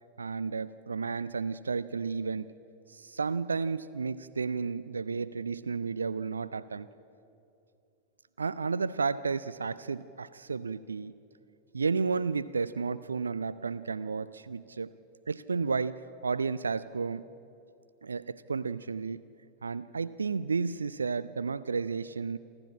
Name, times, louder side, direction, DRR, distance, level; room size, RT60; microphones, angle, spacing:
voice 1, 0.2-2.5 2.9-6.9 8.4-11.1 11.7-14.9 15.3-17.2 18.0-19.2 19.6-22.4, right 5 dB, 75° right, 17 dB, 0.4 m, -32 dB
28.0 x 12.5 x 8.6 m, 2.8 s
figure-of-eight pair, 90°, 0 cm